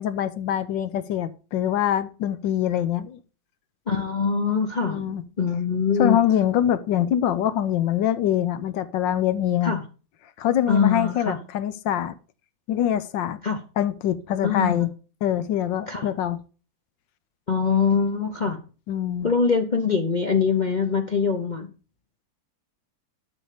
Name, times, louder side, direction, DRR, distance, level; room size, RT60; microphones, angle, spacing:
voice 1, 0.0-3.2 4.8-5.2 6.0-9.8 10.4-12.1 12.7-13.4 13.8-14.9 15.2-16.4 18.9-19.3, left 10 dB, 80° left, 1.5 m, -24 dB
voice 2, 3.9-5.0 5.4-6.2 9.6-9.8 10.7-11.4 13.4-13.6 14.4-14.9 15.9-16.1 17.5-18.6 19.2-21.7, left 5 dB, 45° left, 0.6 m, -23 dB
12.0 x 5.5 x 5.0 m
omnidirectional pair, 2.0 m